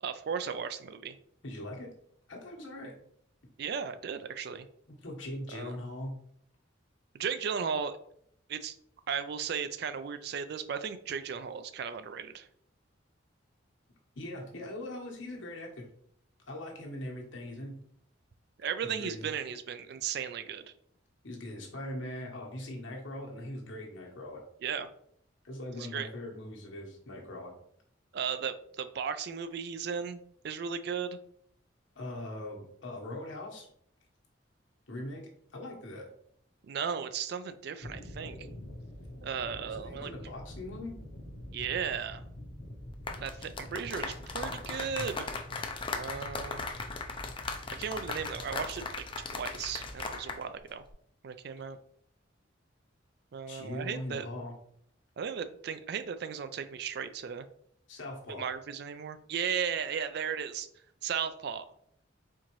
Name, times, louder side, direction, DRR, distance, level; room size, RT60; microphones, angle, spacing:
voice 1, 0.0-1.2 3.6-4.7 5.5-5.7 7.1-8.0 8.5-8.7 9.1-12.5 18.6-20.6 24.6-24.9 25.8-26.1 28.1-30.2 30.4-31.2 36.6-38.4 39.2-40.1 41.5-42.2 43.2-45.4 46.0-46.7 47.8-48.8 49.2-50.8 51.2-51.8 53.3-54.3 55.2-57.5 58.3-60.7 61.0-61.7, right 7 dB, 55° right, 11 dB, 0.3 m, -35 dB
voice 2, 1.4-1.9 2.3-2.9 4.9-6.1 14.1-15.8 16.5-17.8 19.0-19.3 21.2-24.4 25.4-27.5 31.9-33.7 34.9-35.2 35.5-36.0 39.7-41.0 53.5-54.5 57.9-58.4, left 1 dB, 70° left, -1 dB, 1.2 m, -41 dB
sound 1, 37.8-50.3, left 1 dB, 55° left, 0.8 m, -46 dB
sound 2, 42.9-50.4 50.7-50.9, left 4 dB, 25° left, 0.4 m, -38 dB
4.4 x 3.8 x 3.0 m, 0.67 s
head